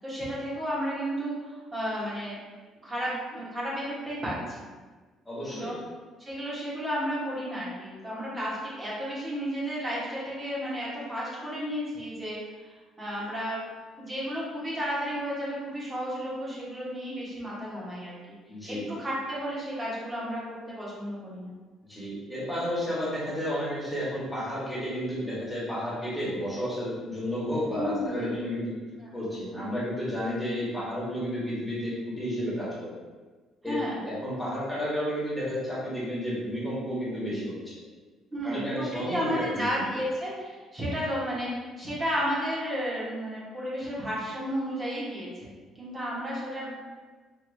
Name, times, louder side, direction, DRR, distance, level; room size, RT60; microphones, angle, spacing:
voice 1, 0.0-2.4 2.8-4.6 5.4-5.8 6.2-12.4 12.6-13.6 14.0-18.2 18.7-21.5 27.8-28.3 29.0-29.1 29.5-29.8 33.7-34.0 38.3-45.5 45.8-46.7, equal, 15° right, -7 dB, 1.2 m, -33 dB
voice 2, 5.2-5.8 18.5-18.9 21.8-28.7 29.1-32.9 33.6-37.7 38.4-39.8, equal, 5° left, -9 dB, 1.4 m, -32 dB
4.6 x 2.8 x 2.7 m, 1.4 s
cardioid pair, 150°, 0 cm